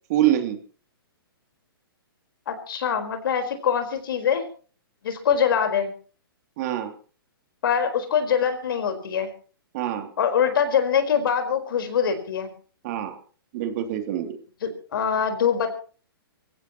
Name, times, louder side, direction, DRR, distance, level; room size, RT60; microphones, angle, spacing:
voice 1, 0.1-0.6 6.6-6.9 9.7-10.1 12.8-13.2 13.5-14.4, right 12 dB, 45° right, 6 dB, 3.0 m, -25 dB
voice 2, 2.5-4.4 5.0-5.9 7.6-9.3 10.2-12.5 14.6-15.8, left 7 dB, 65° left, 7 dB, 4.5 m, -23 dB
25.0 x 16.0 x 3.0 m, 0.39 s
hypercardioid pair, 135°, 12 cm